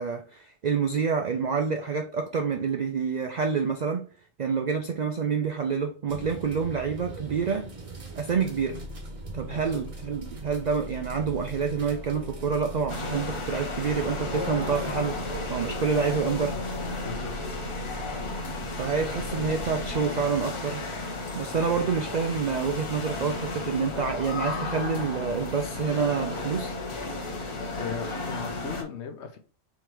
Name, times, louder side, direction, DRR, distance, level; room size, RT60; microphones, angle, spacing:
voice 1, 0.0-4.1 4.4-7.7 8.2-8.8 9.3-15.2 15.5-16.6 18.8-20.8 21.4-26.7, right 6 dB, 70° right, 0.4 m, -28 dB
sound 1, 6.1-20.0, right 1 dB, 30° right, 0.8 m, -40 dB
voice 2, 9.5-9.8 17.0-17.6 27.2-29.4, left 7 dB, 65° left, 0.9 m, -39 dB
sound 2, 12.9-28.8, left 3 dB, 30° left, 0.6 m, -33 dB
3.6 x 3.0 x 4.5 m
omnidirectional pair, 1.3 m